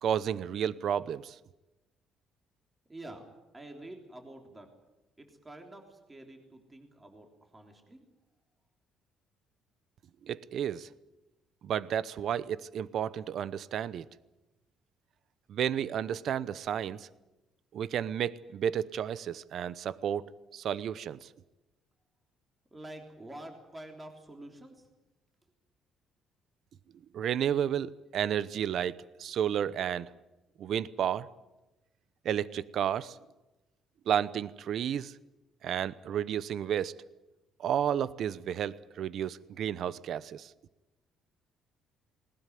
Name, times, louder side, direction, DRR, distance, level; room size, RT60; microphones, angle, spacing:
voice 1, 0.0-1.3 10.3-10.9 11.6-14.0 15.5-17.1 17.7-20.3 20.5-21.3 27.1-30.1 30.6-31.3 32.2-33.1 34.1-35.1 35.6-36.9 37.6-40.5, right 9 dB, 55° right, 18 dB, 0.8 m, -32 dB
voice 2, 2.9-3.2 3.5-4.7 5.2-8.1 22.7-24.9, right 1 dB, 15° right, 4 dB, 3.4 m, -48 dB
20.5 x 19.5 x 9.4 m, 1.0 s
cardioid pair, 130°, 0 cm